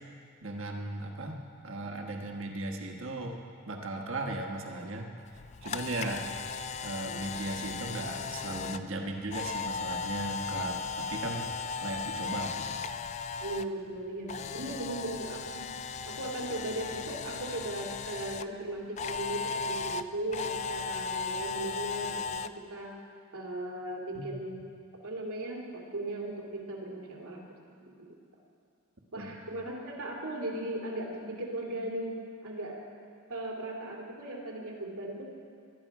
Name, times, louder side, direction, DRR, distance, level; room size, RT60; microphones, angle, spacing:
voice 1, 0.4-1.4 1.6-3.4 3.7-5.1 5.6-6.2 6.8-11.5 11.8-12.8 24.1-24.3 29.1-29.3, right 2 dB, 65° right, 2 dB, 1.4 m, -37 dB
Camera, 5.3-13.7 14.0-18.4 19.0-22.5, left 5 dB, 30° left, 0.3 m, -36 dB
voice 2, 13.4-15.7 16.0-22.9 23.3-24.6 25.0-27.4 27.8-28.1 29.1-32.2 32.4-32.8 33.3-35.3, right 1 dB, 85° right, -1 dB, 2.6 m, -37 dB
19.0 x 12.5 x 4.9 m, 2.4 s
head